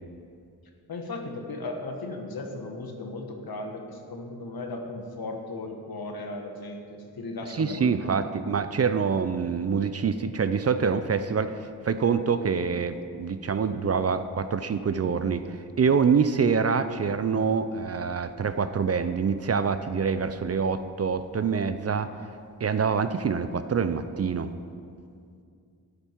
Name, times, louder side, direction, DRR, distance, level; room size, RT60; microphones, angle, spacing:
voice 1, 0.9-8.2, left 2 dB, 65° left, 3 dB, 1.4 m, -36 dB
voice 2, 7.6-22.1 22.6-24.5, right 6 dB, 40° right, 11 dB, 0.5 m, -26 dB
13.0 x 8.9 x 4.6 m, 2.4 s
wide cardioid pair, 115°, 38 cm